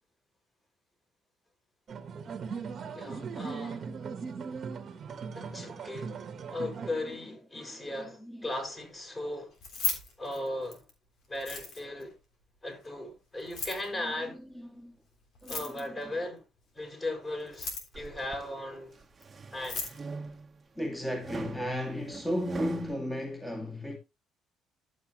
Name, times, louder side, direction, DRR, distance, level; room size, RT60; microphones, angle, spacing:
sound 1, 1.9-6.9, right 5 dB, 50° right, 1.4 m, -39 dB
voice 1, 2.9-3.9 5.3-6.2 6.5-9.5 10.2-10.8 11.3-12.1 12.6-14.4 15.5-16.4 16.7-18.9 19.5-19.8, left 1 dB, 25° left, 6.3 m, -37 dB
voice 2, 7.0-8.5 13.9-15.0 15.4-16.2 18.0-18.1 20.8-24.0, left 1 dB, 5° left, 2.2 m, -36 dB
Keys jangling, 9.5-10.9 11.3-12.0 13.4-13.9 15.3-16.0 17.4-18.1 19.2-19.3 19.5-20.0, left 4 dB, 70° left, 3.5 m, -35 dB
sound 2, 17.9-18.5 19.0-20.6 21.2-22.9, right 4 dB, 30° right, 1.3 m, -41 dB
12.0 x 7.2 x 3.1 m
supercardioid pair, 80°, 0 cm